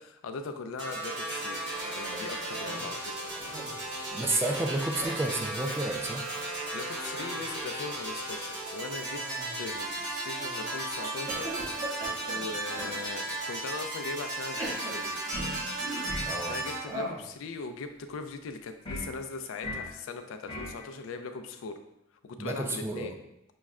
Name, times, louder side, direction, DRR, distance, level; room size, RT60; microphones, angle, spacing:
voice 1, 0.0-1.6 1.9-3.5 6.7-9.3 9.5-11.5 12.0-15.2 16.5-21.7 22.2-23.2, left 4 dB, 90° left, 7 dB, 0.4 m, -40 dB
sound 1, 0.8-16.8, right 2 dB, 65° right, 1.1 m, -35 dB
Cough, 1.7-2.9 3.2-3.9 4.9-5.3 5.6-5.8 6.2-6.5 7.0-7.4 9.0-9.8 10.4-10.8 11.3-13.0 13.7-13.8 14.4-16.2 16.8-17.3, right 1 dB, 45° right, 1.3 m, -41 dB
voice 2, 4.1-6.2 16.3-16.6 22.4-23.1, right 2 dB, 15° right, 3 dB, 0.3 m, -31 dB
sound 2, 15.3-15.7 16.1-16.4 18.9-19.1 19.6-19.9 20.5-20.8, left 1 dB, 25° left, 0.7 m, -37 dB
6.0 x 2.1 x 2.3 m, 0.84 s
head